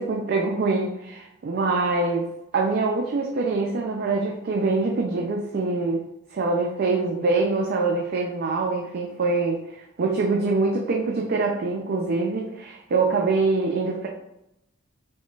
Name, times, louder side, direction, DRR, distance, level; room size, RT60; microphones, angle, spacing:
voice 1, 0.0-2.2 2.5-6.1 6.3-14.1, right 3 dB, 50° right, 1 dB, 0.4 m, -24 dB
3.8 x 3.6 x 2.4 m, 0.87 s
head